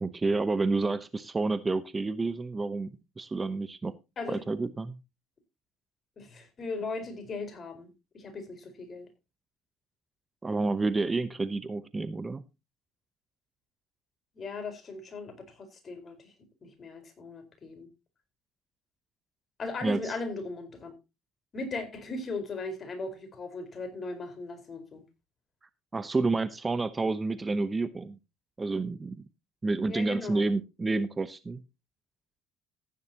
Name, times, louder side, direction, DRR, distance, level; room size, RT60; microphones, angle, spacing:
voice 1, 0.0-3.9 4.3-5.0 10.4-12.4 19.8-20.1 25.9-28.2 28.6-29.2 29.6-31.6, right 3 dB, 20° right, 0.9 m, -29 dB
voice 2, 6.2-9.1 14.3-16.3 16.6-17.9 19.6-20.9 21.5-25.0 29.9-30.5, left 3 dB, 40° left, 4.6 m, -38 dB
14.5 x 10.5 x 2.9 m
hypercardioid pair, 65°, 0 cm